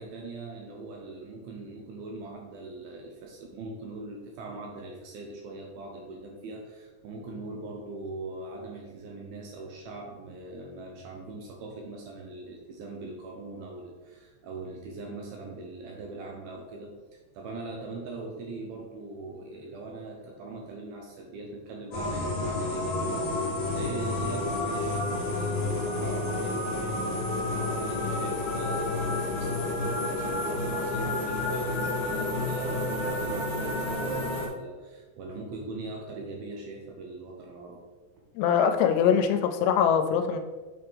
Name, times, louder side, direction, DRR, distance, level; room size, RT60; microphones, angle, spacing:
voice 1, 0.0-37.8, right 2 dB, 80° right, 1 dB, 2.3 m, -41 dB
sound 1, 21.9-34.5, left 2 dB, 65° left, 1.2 m, -30 dB
voice 2, 38.4-40.4, left 8 dB, 85° left, 7 dB, 2.6 m, -23 dB
8.5 x 4.4 x 3.4 m, 1.3 s
omnidirectional pair, 4.9 m